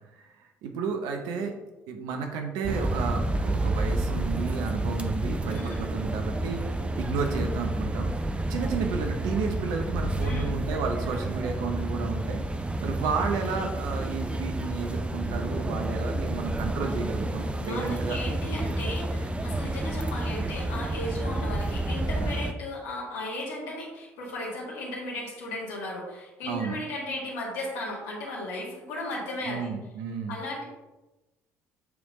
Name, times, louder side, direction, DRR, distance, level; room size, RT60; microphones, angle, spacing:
voice 1, 0.2-1.5 1.9-8.2 8.5-12.4 12.8-18.2 26.5-26.8 29.5-30.4, right 5 dB, 65° right, 4 dB, 0.8 m, -32 dB
sound 1, 2.6-22.5, right 1 dB, 15° right, 0.5 m, -30 dB
voice 2, 5.5-5.9 10.2-10.5 17.6-29.7 30.3-30.6, left 1 dB, 65° left, -2 dB, 1.8 m, -36 dB
7.9 x 3.5 x 3.6 m, 1.1 s
figure-of-eight pair, 50°, 7 cm